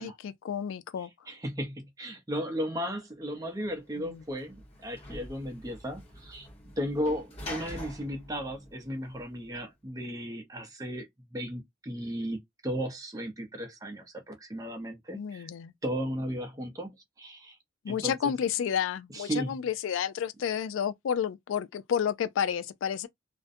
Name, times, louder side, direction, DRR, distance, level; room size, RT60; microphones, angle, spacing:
voice 1, 0.0-1.1 4.0-4.2 15.1-15.7 17.8-23.1, left 8 dB, 85° left, 0.3 m, -31 dB
voice 2, 1.3-6.5 6.8-15.5 15.8-16.9 17.2-17.6 17.9-18.3 19.1-19.6, equal, 20° right, 0.5 m, -35 dB
Sliding door / Slam, 3.7-9.5, left 1 dB, 30° left, 0.9 m, -45 dB
2.5 x 2.1 x 2.5 m
head